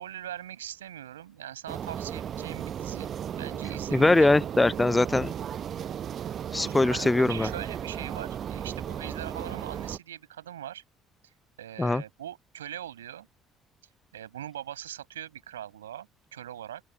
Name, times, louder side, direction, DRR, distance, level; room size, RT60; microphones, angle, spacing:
voice 1, 0.0-4.3 6.5-10.8 11.2-13.3 14.1-16.8, right 11 dB, 75° right, 6.0 m, -41 dB
sound 1, 1.7-10.0, right 9 dB, 45° right, 1.1 m, -35 dB
voice 2, 3.9-5.3 6.5-7.5 11.8-12.0, left 2 dB, 15° left, 0.6 m, -22 dB
open air
figure-of-eight pair, 50°, 0 cm